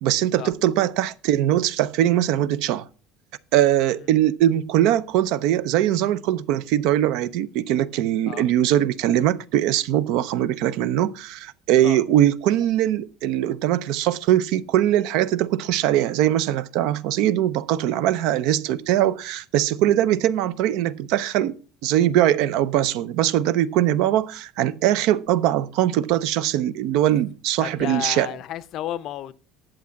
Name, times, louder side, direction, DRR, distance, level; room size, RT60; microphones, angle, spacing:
voice 1, 0.0-2.8 3.5-21.5 21.8-28.3, right 12 dB, 60° right, 0.5 m, -21 dB
voice 2, 27.6-29.3, left 12 dB, 45° left, 0.5 m, -32 dB
11.0 x 7.4 x 5.8 m
cardioid pair, 175°, 0 cm